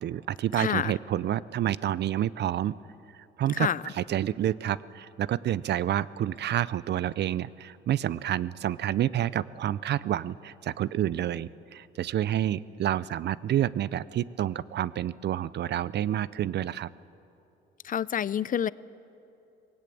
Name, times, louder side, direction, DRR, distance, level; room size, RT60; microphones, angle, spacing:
voice 1, 0.0-2.8 3.4-3.7 4.0-16.9, right 11 dB, 60° right, 19 dB, 0.5 m, -29 dB
voice 2, 0.5-1.0 3.5-3.8 17.8-18.7, left 9 dB, 45° left, 19 dB, 0.4 m, -28 dB
19.0 x 17.5 x 8.6 m, 2.8 s
cardioid pair, 90°, 20 cm